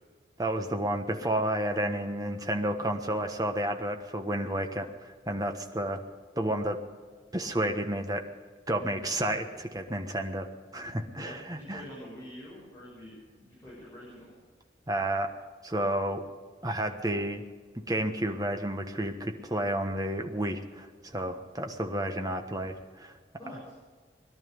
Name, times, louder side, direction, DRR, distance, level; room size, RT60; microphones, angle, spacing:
voice 1, 0.4-6.0 6.4-6.8 7.3-8.2 8.7-10.5 10.7-11.8 14.9-15.3 15.6-16.2 16.6-17.4 17.7-23.2, right 1 dB, 20° right, 5 dB, 1.2 m, -31 dB
voice 2, 11.1-14.4 23.4-23.7, equal, 15° left, -8 dB, 6.8 m, -46 dB
21.5 x 12.0 x 5.4 m, 1.5 s
head